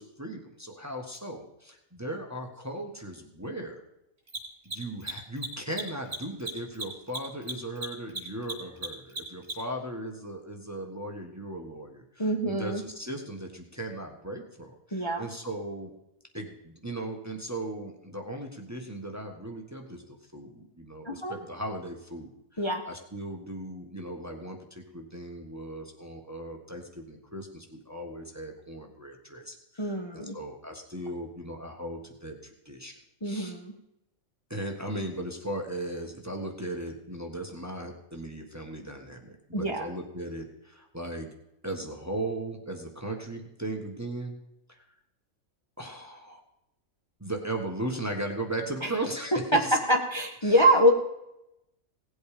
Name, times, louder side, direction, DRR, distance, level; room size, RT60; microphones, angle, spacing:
voice 1, 0.0-3.8 4.6-15.9 16.3-32.9 33.2-33.5 34.5-41.3 41.6-44.4 44.7-44.8 45.8-46.4 47.2-49.8 50.4-50.6, right 1 dB, 10° right, 2 dB, 1.4 m, -37 dB
Mechanisms, 1.1-1.2 4.2-9.8, right 3 dB, 45° right, 3.4 m, -36 dB
voice 2, 12.2-12.8 14.9-15.3 21.0-21.4 22.6-22.8 29.8-30.4 33.2-33.7 39.5-39.9 48.8-48.9 49.5-50.9, equal, 20° left, 2 dB, 1.2 m, -25 dB
17.5 x 8.1 x 5.1 m, 0.86 s
omnidirectional pair, 1.5 m